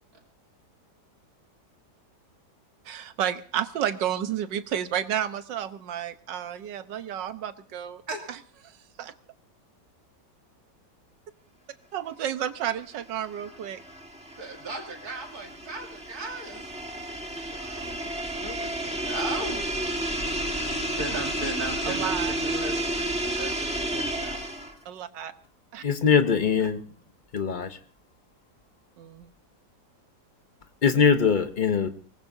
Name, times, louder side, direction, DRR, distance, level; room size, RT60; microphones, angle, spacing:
voice 1, 2.8-8.0 8.3-8.4 8.7-9.1 11.9-13.8 21.9-22.3 24.8-25.3 25.7-25.8 26.6-26.7 29.0-29.3, right 10 dB, 85° right, 11 dB, 1.6 m, -31 dB
sound 1, 12.9-24.8, right 1 dB, 5° right, 1.4 m, -31 dB
voice 2, 14.4-16.6 17.5-19.6 20.3-24.4, right 2 dB, 60° right, 2 dB, 3.0 m, -37 dB
voice 3, 25.8-26.8 27.3-27.8 30.8-31.9, left 6 dB, 40° left, 9 dB, 0.7 m, -22 dB
23.5 x 19.0 x 2.7 m, 0.41 s
omnidirectional pair, 1.9 m